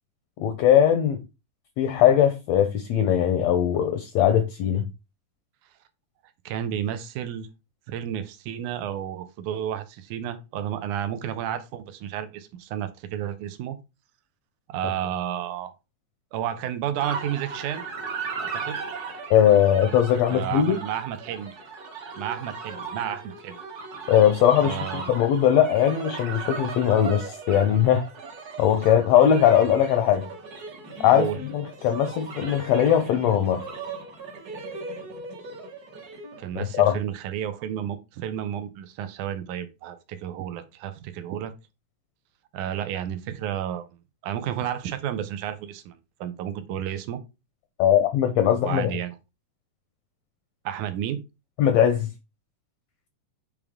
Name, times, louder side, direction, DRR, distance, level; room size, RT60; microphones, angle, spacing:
voice 1, 0.4-1.2 1.8-4.9 19.3-20.8 24.1-24.8 25.1-28.1 28.6-30.3 31.0-33.6 36.5-37.0 47.8-48.9 51.6-52.1, left 10 dB, 75° left, 1.6 m, -20 dB
voice 2, 6.5-7.5 7.9-13.8 14.7-15.7 16.3-17.8 18.4-18.8 20.3-21.5 22.2-23.5 24.6-25.1 31.1-31.4 36.4-41.5 42.5-43.9 44.2-47.2 48.5-49.2 50.7-51.2, right 10 dB, 85° right, 2.3 m, -31 dB
sound 1, 17.0-36.5, right 4 dB, 50° right, 1.2 m, -37 dB
8.5 x 3.4 x 3.6 m
omnidirectional pair, 3.5 m